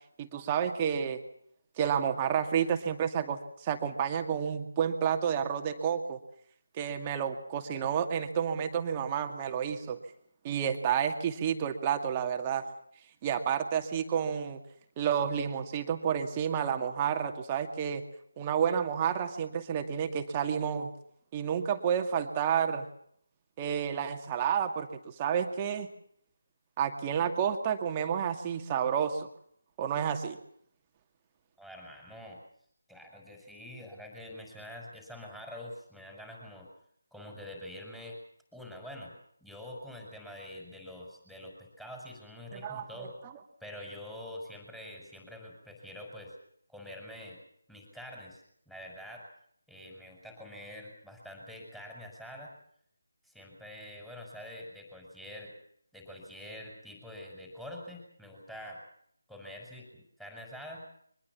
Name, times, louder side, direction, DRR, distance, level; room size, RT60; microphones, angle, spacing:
voice 1, 0.2-1.2 1.8-6.2 6.7-10.0 10.4-12.6 13.2-14.6 15.0-18.0 18.4-20.9 21.3-22.9 23.6-25.9 26.8-29.3 29.8-30.4 42.5-43.1, right 8 dB, 20° right, 5 dB, 2.3 m, -30 dB
voice 2, 31.6-32.4 32.9-36.7 37.1-38.2 38.5-39.1 39.4-43.2 43.6-46.3 46.7-47.4 47.7-49.3 49.7-52.5 53.2-55.5 55.9-58.8 59.3-60.8, left 1 dB, ahead, 0 dB, 5.7 m, -46 dB
24.0 x 20.5 x 7.3 m, 0.66 s
figure-of-eight pair, 155°, 0 cm